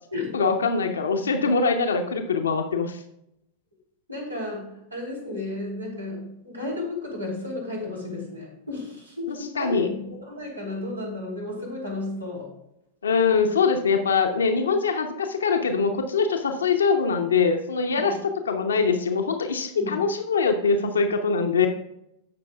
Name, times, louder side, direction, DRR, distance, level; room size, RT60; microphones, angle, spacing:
voice 1, 0.3-3.0 9.3-9.9 13.0-21.7, left 5 dB, 70° left, 5 dB, 0.9 m, -23 dB
voice 2, 4.1-12.5 17.9-18.0 19.8-20.0, left 2 dB, 85° right, -2 dB, 3.1 m, -33 dB
17.5 x 6.2 x 2.4 m, 0.82 s
figure-of-eight pair, 90°, 0 cm